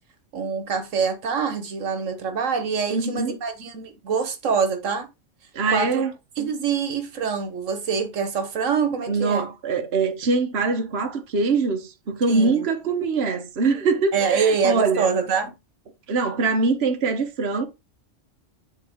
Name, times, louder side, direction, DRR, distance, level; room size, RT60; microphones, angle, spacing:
voice 1, 0.3-5.1 5.7-6.0 6.4-9.5 12.3-12.7 14.1-15.5, right 6 dB, 85° right, 1.5 m, -25 dB
voice 2, 2.9-3.3 5.5-6.1 9.1-15.1 16.1-17.7, right 4 dB, 55° right, 1.3 m, -23 dB
9.0 x 4.4 x 3.6 m
omnidirectional pair, 1.3 m